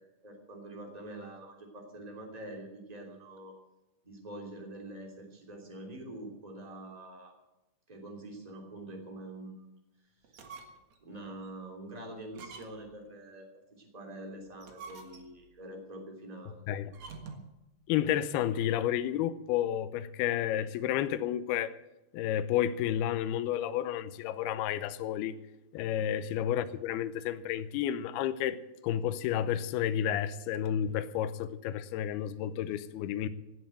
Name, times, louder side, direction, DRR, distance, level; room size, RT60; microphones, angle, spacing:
voice 1, 0.0-3.6 4.0-7.3 7.9-9.7 10.3-10.5 11.0-13.5 13.8-16.6 26.0-26.1, right 1 dB, 10° right, 2.0 m, -45 dB
sound 1, 10.2-11.0 11.4-11.5 12.3-13.0 14.5-15.5 16.9-17.6, right 4 dB, 60° right, 1.9 m, -48 dB
voice 2, 17.9-21.8 22.1-25.4 25.7-28.6 28.8-33.3, left 10 dB, 85° left, 2.2 m, -31 dB
17.5 x 7.9 x 9.1 m
omnidirectional pair, 5.4 m